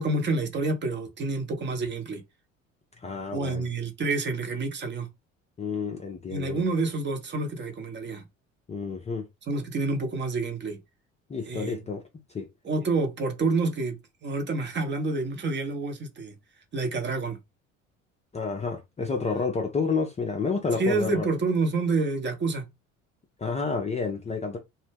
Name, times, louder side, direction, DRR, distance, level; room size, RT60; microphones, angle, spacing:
voice 1, 0.0-2.2 3.3-5.1 6.3-8.2 9.5-10.8 11.5-11.8 12.6-16.3 16.7-17.4 20.7-22.7, right 3 dB, 30° right, 0.7 m, -28 dB
voice 2, 3.0-3.7 5.6-6.6 8.7-9.3 11.3-12.0 12.3-12.5 18.3-21.3 23.4-24.6, left 4 dB, 15° left, 0.5 m, -30 dB
2.2 x 2.0 x 3.3 m
figure-of-eight pair, 60°, 39 cm